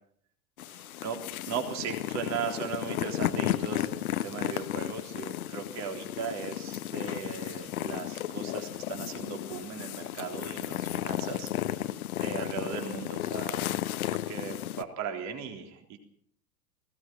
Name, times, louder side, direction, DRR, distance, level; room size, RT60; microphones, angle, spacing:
sound 1, 0.6-14.8, left 12 dB, 60° left, 1.2 m, -34 dB
voice 1, 0.7-1.2 1.4-13.6 14.1-16.0, right 6 dB, 35° right, 4 dB, 3.7 m, -38 dB
20.0 x 17.5 x 7.6 m, 0.63 s
figure-of-eight pair, 90°, 49 cm